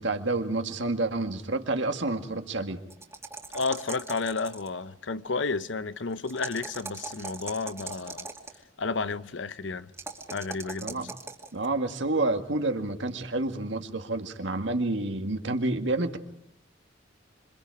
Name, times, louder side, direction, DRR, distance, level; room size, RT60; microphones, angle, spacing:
voice 1, 0.0-2.8 10.8-11.1 11.5-16.2, right 2 dB, 70° right, 2.0 m, -29 dB
sound 1, 2.9-4.8 6.2-8.6 9.9-11.5, right 3 dB, 15° right, 2.5 m, -40 dB
voice 2, 3.5-8.3 8.8-9.9 10.3-11.1, left 4 dB, 70° left, 0.8 m, -31 dB
27.0 x 25.5 x 4.9 m
head